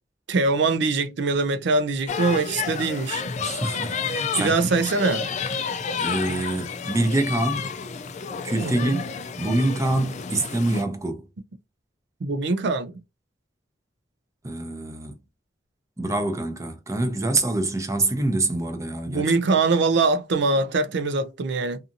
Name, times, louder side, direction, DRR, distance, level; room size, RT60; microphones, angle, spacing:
voice 1, 0.3-3.2 4.4-5.2 8.6-9.0 12.2-13.0 19.1-21.8, right 3 dB, 65° right, 0.5 m, -23 dB
sound 1, 2.1-10.8, left 6 dB, 40° left, 0.3 m, -31 dB
voice 2, 3.4-4.7 6.0-7.7 8.4-9.0 9.4-11.3 14.4-15.2 16.0-19.3, right 2 dB, 15° right, 0.5 m, -25 dB
2.7 x 2.6 x 2.5 m
head